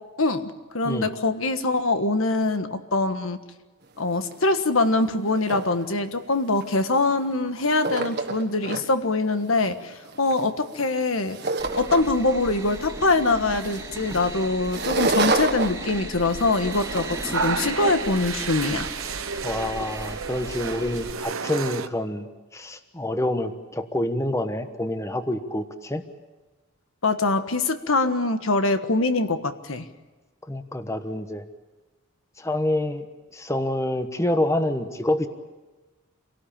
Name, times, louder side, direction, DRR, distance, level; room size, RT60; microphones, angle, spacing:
voice 1, 0.2-3.4 4.0-11.4 11.8-18.9 27.0-29.9, left 2 dB, 80° left, 9 dB, 1.5 m, -23 dB
sound 1, 4.0-4.1 4.3-4.6 5.0-5.8 6.5-7.3 7.6-8.8 9.3-12.3 12.7-17.4, right 3 dB, 50° right, 1.6 m, -29 dB
sound 2, 11.6-21.1, right 2 dB, 15° right, 2.0 m, -37 dB
sound 3, 16.2-21.9, right 5 dB, 80° right, 1.0 m, -32 dB
voice 2, 19.4-22.3 22.5-26.0 30.5-31.4 32.4-33.1 33.3-35.3, left 1 dB, 15° left, 8 dB, 1.1 m, -27 dB
27.0 x 18.0 x 8.7 m, 1.2 s
head